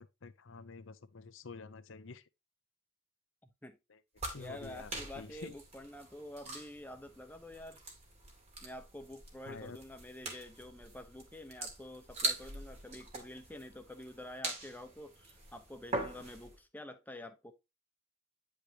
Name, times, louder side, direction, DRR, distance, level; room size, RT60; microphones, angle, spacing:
voice 1, 0.0-2.2 3.9-4.0 4.3-5.5 9.5-9.8, left 4 dB, 60° left, 0.7 m, -49 dB
sound 1, 4.2-16.6, right 2 dB, 30° right, 2.5 m, -43 dB
voice 2, 4.3-7.8 8.6-17.5, left 1 dB, 10° left, 0.9 m, -48 dB
9.7 x 5.1 x 2.9 m
head